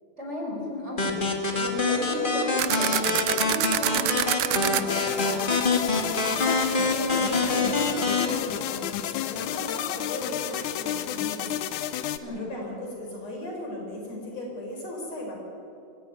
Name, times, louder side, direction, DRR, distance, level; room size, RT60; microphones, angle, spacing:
voice 1, 0.2-1.2 1.5-5.6 12.2-12.5, equal, 20° right, -2 dB, 4.9 m, -34 dB
sound 1, 1.0-8.3, left 3 dB, 20° left, 1.8 m, -26 dB
sound 2, 2.6-4.8, right 14 dB, 75° right, 1.6 m, -26 dB
sound 3, 4.9-12.2, left 11 dB, 80° left, 2.3 m, -31 dB
voice 2, 6.4-11.6 11.9-15.3, left 1 dB, 55° left, 0 dB, 5.6 m, -37 dB
23.0 x 15.0 x 9.5 m, 2.7 s
omnidirectional pair, 3.5 m